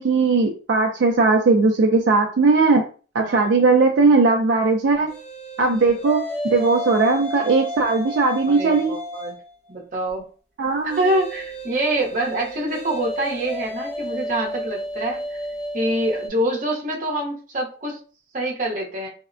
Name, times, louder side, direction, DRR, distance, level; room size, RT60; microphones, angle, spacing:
voice 1, 0.0-2.8 3.1-5.1 5.6-6.2 6.5-8.9 10.6-11.0, right 3 dB, 65° right, 1 dB, 0.4 m, -18 dB
voice 2, 3.2-3.5 5.8-5.9 8.5-9.3 9.7-10.2 10.8-15.4 15.7-18.0 18.3-19.1, right 1 dB, 40° right, -1 dB, 0.7 m, -25 dB
sound 1, 5.1-9.5 10.9-16.3, equal, 35° left, 0.7 m, -32 dB
3.4 x 2.1 x 2.5 m, 0.37 s
head